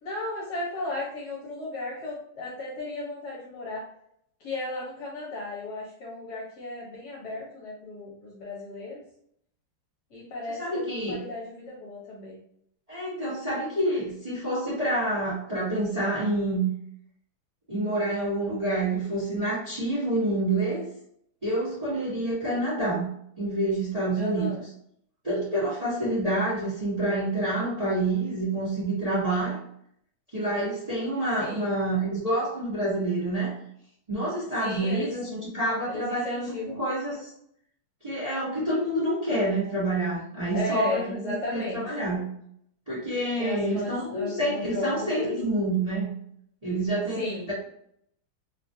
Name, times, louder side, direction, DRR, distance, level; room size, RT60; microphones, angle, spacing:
voice 1, 0.0-3.9 4.4-9.0 10.1-12.4 24.2-24.6 31.4-31.7 34.6-35.1 35.9-36.8 40.5-41.8 43.4-45.4 47.2-47.5, left 2 dB, 60° left, -4 dB, 1.1 m, -35 dB
voice 2, 10.5-11.2 12.9-16.7 17.7-20.9 21.4-23.1 23.4-24.5 25.2-29.6 30.3-33.5 34.1-37.3 38.0-42.3 42.9-46.1 46.6-47.2, right 1 dB, 75° right, -9 dB, 0.3 m, -28 dB
3.2 x 2.4 x 2.6 m, 0.70 s
omnidirectional pair, 2.3 m